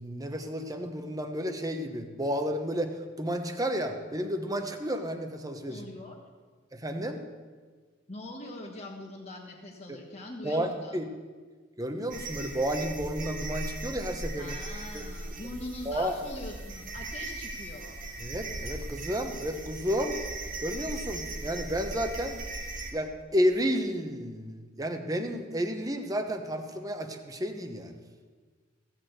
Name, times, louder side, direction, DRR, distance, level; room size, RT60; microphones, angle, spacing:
voice 1, 0.0-5.9 6.7-7.2 9.9-10.0 10.4-11.1 11.8-14.5 14.9-15.0 15.9-16.1 18.2-20.2 20.6-22.4 22.9-27.9, equal, 20° right, 5 dB, 1.0 m, -31 dB
voice 2, 5.7-6.1 8.1-11.0 14.4-18.0, left 1 dB, 35° left, -1 dB, 1.4 m, -42 dB
sound 1, 12.1-22.9, right 2 dB, 45° right, 1.4 m, -38 dB
16.0 x 6.4 x 8.0 m, 1.5 s
head